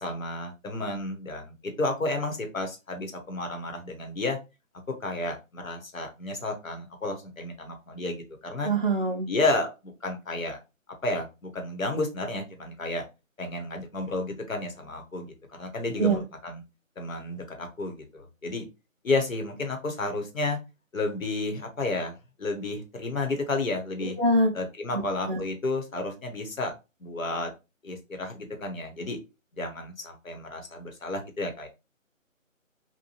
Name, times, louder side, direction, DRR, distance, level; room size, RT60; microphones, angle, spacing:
voice 1, 0.0-4.4 5.0-8.7 9.3-9.7 10.0-10.6 11.0-13.0 13.4-15.3 15.6-16.6 17.0-18.7 19.0-20.6 20.9-24.2 24.5-26.7 27.0-27.5 27.8-29.2 29.5-31.7, left 2 dB, 75° left, 5 dB, 1.0 m, -31 dB
voice 2, 8.6-9.3 16.0-16.2 24.2-24.5 25.3-25.4, right 2 dB, 40° right, -1 dB, 0.4 m, -23 dB
2.8 x 2.2 x 2.8 m, 0.27 s
figure-of-eight pair, 165°, 40 cm